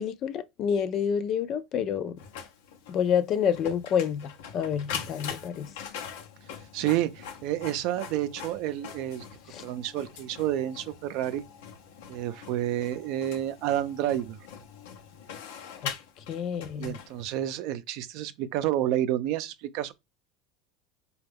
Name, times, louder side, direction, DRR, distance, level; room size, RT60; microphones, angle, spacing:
voice 1, 0.0-2.2 2.9-5.7 15.8-15.9 16.3-17.0, left 8 dB, 45° left, 0.4 m, -28 dB
Printer, 2.2-17.5, left 7 dB, 85° left, 0.7 m, -43 dB
voice 2, 6.7-9.2 9.6-11.4 12.1-14.4 16.8-19.9, right 12 dB, 60° right, 0.5 m, -29 dB
4.2 x 2.3 x 3.4 m
supercardioid pair, 130°, 0 cm